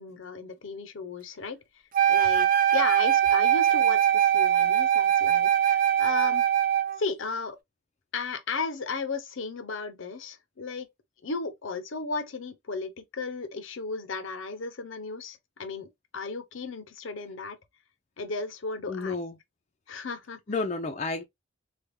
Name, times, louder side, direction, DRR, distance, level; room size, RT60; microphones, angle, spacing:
voice 1, 0.0-1.6 2.1-6.5 7.0-7.6 8.1-10.9 11.2-17.6 18.2-19.2 19.9-20.4, left 4 dB, 80° left, 0.6 m, -35 dB
Wind instrument woodwind instrument, 1.9-7.0, right 10 dB, 45° right, 0.4 m, -22 dB
voice 2, 18.9-19.4 20.5-21.2, left 3 dB, 35° left, 0.4 m, -31 dB
3.4 x 2.3 x 3.0 m
head